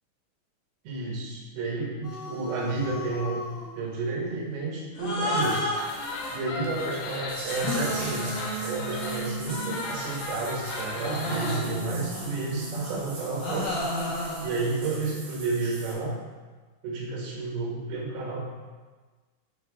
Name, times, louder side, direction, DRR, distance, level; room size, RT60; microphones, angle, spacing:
voice 1, 0.9-3.4 3.8-5.7 6.3-13.8 14.4-16.1 16.8-18.4, right 3 dB, 80° right, -3 dB, 3.8 m, -31 dB
sound 1, 2.0-3.7 5.0-6.8 7.6-10.1 11.0-14.8, equal, 90° left, 1.3 m, -33 dB
sound 2, 5.2-11.6, left 3 dB, 75° left, 2.5 m, -36 dB
sound 3, 7.3-15.9, right 2 dB, 55° right, 1.9 m, -42 dB
9.1 x 4.5 x 3.6 m, 1.4 s
omnidirectional pair, 5.1 m